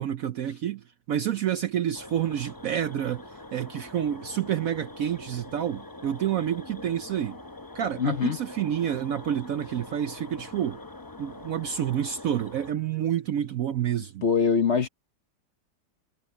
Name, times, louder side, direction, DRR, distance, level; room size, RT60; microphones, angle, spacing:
voice 1, 0.0-7.4 7.7-10.8 11.2-14.2, right 10 dB, 65° right, 0.9 m, -29 dB
sound 1, 1.9-12.7, left 2 dB, 25° left, 0.4 m, -44 dB
voice 2, 8.0-8.4 14.2-14.9, left 6 dB, 50° left, 1.0 m, -23 dB
omnidirectional pair, 1.9 m